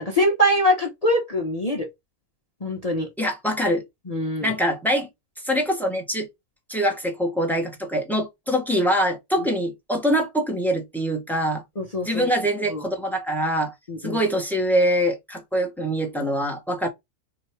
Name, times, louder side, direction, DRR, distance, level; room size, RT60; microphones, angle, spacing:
voice 1, 0.0-1.9 2.6-3.1 4.1-4.5 11.8-12.3 12.7-12.8 13.9-14.2, equal, 35° left, 0.7 m, -23 dB
voice 2, 3.2-3.8 4.4-5.1 5.4-6.3 6.7-11.6 12.0-13.7 14.0-16.9, equal, ahead, 0.8 m, -24 dB
3.8 x 2.3 x 4.4 m
omnidirectional pair, 1.5 m